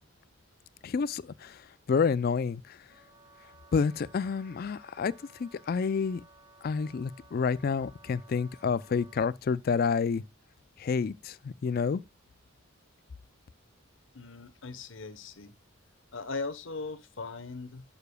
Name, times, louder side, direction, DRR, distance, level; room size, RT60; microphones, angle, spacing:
voice 1, 0.8-2.8 3.7-5.1 5.4-6.2 6.6-10.2 10.8-12.0, left 5 dB, 45° left, 0.3 m, -29 dB
Wind instrument woodwind instrument, 2.9-9.4, right 2 dB, 20° right, 1.0 m, -58 dB
voice 2, 14.1-15.6 16.1-17.8, left 3 dB, 65° left, 1.0 m, -39 dB
11.5 x 6.8 x 2.2 m
head